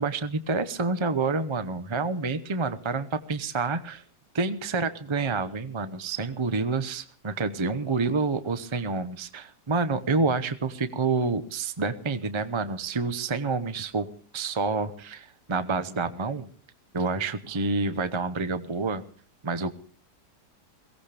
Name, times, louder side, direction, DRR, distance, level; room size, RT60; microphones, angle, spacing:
voice 1, 0.0-4.0 4.3-14.1 14.3-16.5 16.9-19.0 19.4-19.7, right 4 dB, 35° right, 11 dB, 0.5 m, -28 dB
22.5 x 17.0 x 3.4 m, 0.42 s
omnidirectional pair, 1.8 m